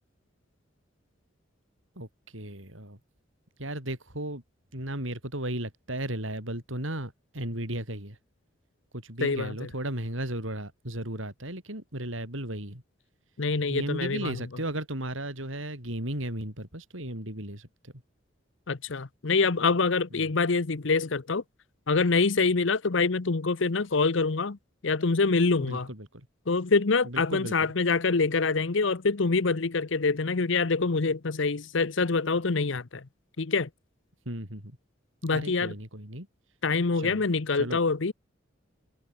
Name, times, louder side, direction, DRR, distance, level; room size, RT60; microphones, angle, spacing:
voice 1, 2.0-3.0 3.6-4.4 4.7-8.2 8.9-12.8 13.7-17.9 20.2-20.3 25.6-26.2 27.0-27.7 34.3-34.8 35.3-36.3 36.9-37.2 37.5-37.8, right 1 dB, 80° right, 7.8 m, -35 dB
voice 2, 9.2-9.7 13.4-14.4 18.7-21.4 21.9-24.6 24.8-25.9 26.5-33.0 33.4-33.7 35.2-35.7 36.6-38.1, left 4 dB, 70° left, 0.9 m, -25 dB
head